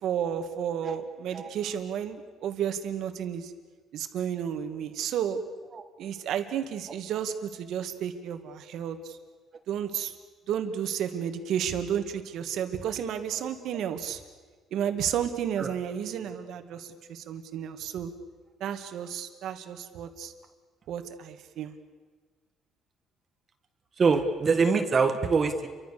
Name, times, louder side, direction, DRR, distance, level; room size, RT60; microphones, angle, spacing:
voice 1, 0.0-3.5 3.9-5.4 6.0-9.2 9.7-10.1 10.5-14.2 14.7-18.1 18.6-20.3 20.9-21.7, right 9 dB, 65° right, 7 dB, 2.2 m, -32 dB
voice 2, 24.0-25.7, right 4 dB, 30° right, 6 dB, 1.7 m, -24 dB
29.5 x 24.5 x 7.0 m, 1.4 s
cardioid pair, 145°, 0 cm